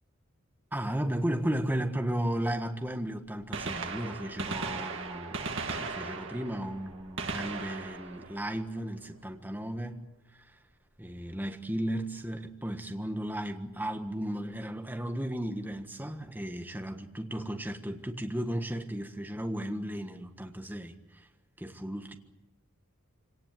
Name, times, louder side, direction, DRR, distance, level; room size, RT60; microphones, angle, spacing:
voice 1, 0.7-10.6 11.0-21.3 21.6-22.2, right 1 dB, 10° right, 1.4 m, -35 dB
Gunshot gunfire, 2.8-2.9 3.4-9.2 11.2-11.3 12.3-12.4 14.0-14.1 15.5-15.6 15.8-15.9, right 4 dB, 60° right, 2.4 m, -38 dB
25.5 x 18.5 x 9.2 m
head